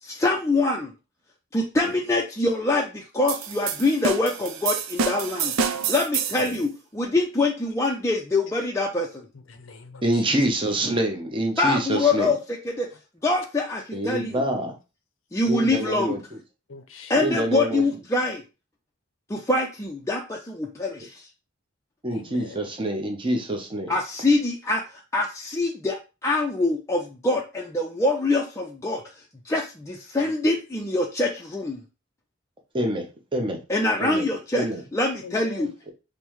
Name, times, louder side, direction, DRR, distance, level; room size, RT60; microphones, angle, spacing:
voice 1, 0.0-0.9 1.5-5.5 5.9-9.2 11.6-12.4 12.8-12.9 13.2-14.4 15.3-16.1 17.1-18.4 19.3-21.2 23.9-29.0 29.4-31.8 33.7-34.7 34.9-35.7, left 2 dB, 15° left, 0.4 m, -24 dB
sound 1, 3.3-6.6, right 6 dB, 80° right, 0.5 m, -28 dB
voice 2, 9.3-10.2 16.7-17.1 22.1-22.6 35.2-35.7, left 5 dB, 65° left, 0.6 m, -42 dB
voice 3, 10.0-12.3 13.9-14.7 15.5-16.4 17.1-17.8 22.0-23.9 32.7-33.6 34.0-34.3 34.5-34.8, right 1 dB, 25° right, 0.7 m, -26 dB
5.3 x 2.1 x 3.0 m
head